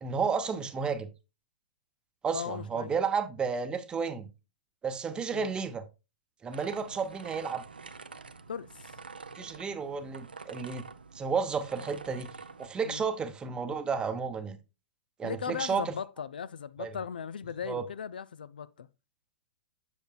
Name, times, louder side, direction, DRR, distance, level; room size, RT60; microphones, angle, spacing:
voice 1, 0.0-1.1 2.2-4.3 4.8-5.8 6.4-7.6 9.3-10.8 11.1-12.3 12.6-14.6 15.2-15.9 16.8-16.9 17.7-17.9, right 5 dB, 15° right, 0.8 m, -32 dB
voice 2, 2.3-2.9 5.3-5.5 8.5-8.7 12.8-13.0 15.2-18.9, left 7 dB, 70° left, 0.4 m, -38 dB
sound 1, 6.5-12.7, right 4 dB, 80° right, 0.5 m, -47 dB
7.8 x 6.3 x 2.3 m
figure-of-eight pair, 105°, 5 cm